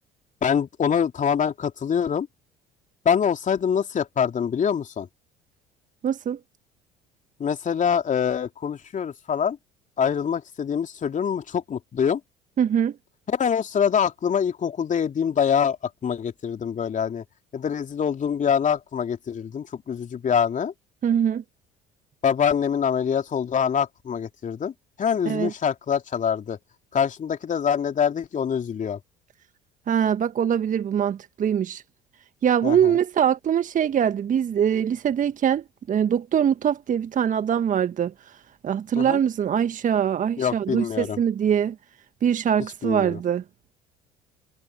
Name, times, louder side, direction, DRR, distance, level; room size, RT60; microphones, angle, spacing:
voice 1, 0.4-2.3 3.0-5.1 7.4-9.6 10.0-12.2 13.3-15.8 16.0-17.2 17.5-20.7 22.2-24.7 25.0-26.6 26.9-29.0 32.6-33.0 39.0-39.2 40.4-41.2 42.8-43.2, left 7 dB, 40° left, 3.2 m, -24 dB
voice 2, 6.0-6.4 12.6-12.9 21.0-21.4 25.2-25.5 29.9-31.8 32.4-38.4 38.6-41.7 42.2-43.4, right 8 dB, 40° right, 1.5 m, -23 dB
figure-of-eight pair, 60°, 21 cm